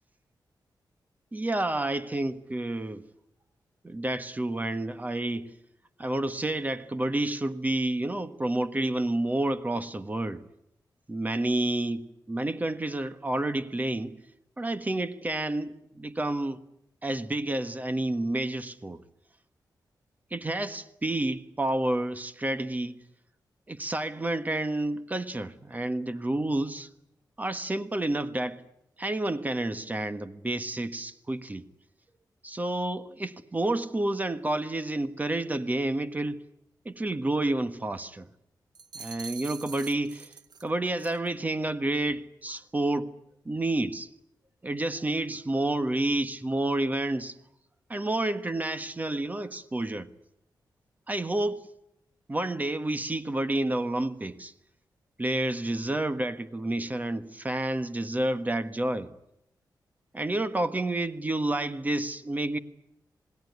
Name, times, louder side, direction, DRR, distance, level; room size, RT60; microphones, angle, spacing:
voice 1, 1.3-3.1 3.8-5.5 6.0-10.5 11.1-14.2 14.6-16.6 17.0-19.0 20.3-22.9 23.7-26.9 27.4-28.6 29.0-31.6 32.4-36.4 36.8-38.3 38.9-40.3 40.6-43.1 43.4-44.1 44.6-47.4 47.9-50.1 51.1-51.7 52.3-54.5 55.2-59.1 60.1-62.6, right 1 dB, 20° right, 1.3 m, -29 dB
sound 1, 38.7-40.7 41.0-41.3, right 5 dB, 65° right, 1.2 m, -44 dB
27.5 x 20.0 x 9.5 m
wide cardioid pair, 130°, 8 cm